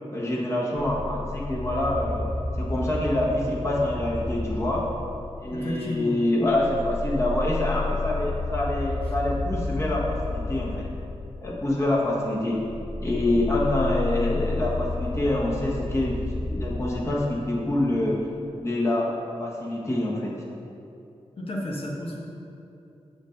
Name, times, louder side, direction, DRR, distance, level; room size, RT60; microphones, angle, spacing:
voice 1, 0.1-2.2 2.6-4.8 5.4-10.8 11.4-12.6 13.0-16.2 16.5-18.2 18.6-19.1 19.4-20.3, left 1 dB, 25° left, -4 dB, 1.2 m, -26 dB
sound 1, 0.8-5.9 6.4-18.0, left 3 dB, 10° left, 0.9 m, -31 dB
voice 2, 5.5-6.2 21.4-22.2, left 1 dB, 55° left, -3 dB, 1.2 m, -31 dB
7.1 x 5.1 x 6.5 m, 2.8 s
wide cardioid pair, 150°, 11 cm